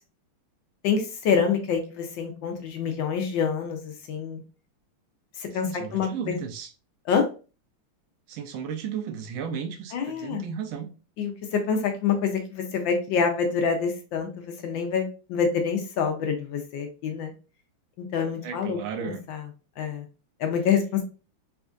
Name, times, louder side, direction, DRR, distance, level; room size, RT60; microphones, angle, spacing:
voice 1, 0.8-4.4 5.4-6.4 7.1-7.2 9.9-10.4 11.2-17.3 18.0-19.5 19.8-20.0 20.4-21.0, left 6 dB, 70° left, 1.3 m, -27 dB
voice 2, 5.6-6.7 8.3-10.9 18.4-19.2, right 7 dB, 80° right, 1.3 m, -34 dB
4.3 x 2.4 x 2.3 m
omnidirectional pair, 2.3 m